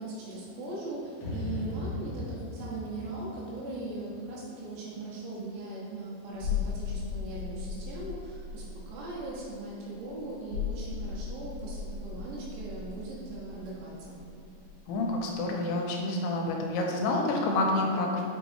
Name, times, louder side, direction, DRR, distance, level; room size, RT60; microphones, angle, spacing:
voice 1, 0.0-14.2, right 2 dB, 90° right, -5 dB, 3.5 m, -39 dB
sound 1, 1.2-4.4, left 1 dB, 60° left, 1.8 m, -38 dB
sound 2, 6.3-14.8 15.0-15.2, left 6 dB, 65° right, 3.2 m, -37 dB
voice 2, 14.9-18.2, left 2 dB, 85° left, 1 dB, 2.6 m, -28 dB
6.2 x 5.7 x 3.0 m, 2.6 s
omnidirectional pair, 4.8 m